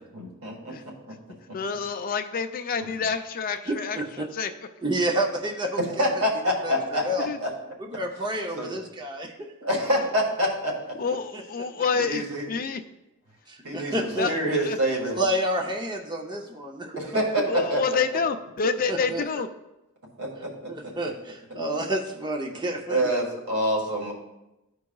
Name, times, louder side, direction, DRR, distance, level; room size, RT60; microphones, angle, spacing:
voice 1, 0.1-1.1 5.9-7.5 8.5-8.8 9.6-11.0 11.9-12.5 13.6-15.2 16.9-17.8 20.2-20.9 22.9-24.1, equal, 85° right, -1 dB, 1.7 m, -27 dB
voice 2, 1.5-4.0 4.3-4.5 7.2-7.4 11.0-12.8 14.2-14.8 17.5-19.5, left 5 dB, 40° left, 7 dB, 0.4 m, -28 dB
voice 3, 3.7-4.3 4.8-6.1 6.6-7.3 7.8-9.3 11.3-11.4 11.8-11.9 13.5-14.3 15.1-17.1 18.9-19.2 20.7-23.0, right 1 dB, 20° right, 1 dB, 0.6 m, -29 dB
13.0 x 4.7 x 2.3 m, 0.95 s
head